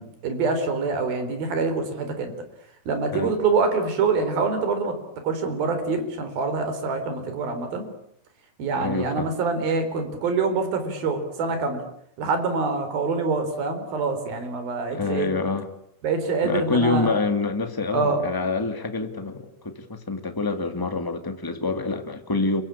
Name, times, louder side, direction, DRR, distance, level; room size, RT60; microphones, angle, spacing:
voice 1, 0.0-2.3 2.9-5.0 5.2-7.9 8.6-11.8 12.2-15.3 16.0-17.2 17.9-18.2, right 4 dB, 60° right, 8 dB, 5.9 m, -25 dB
voice 2, 8.7-9.3 14.9-15.7 16.4-22.6, left 3 dB, 10° left, 7 dB, 1.3 m, -26 dB
29.0 x 23.5 x 8.7 m, 0.72 s
omnidirectional pair, 4.7 m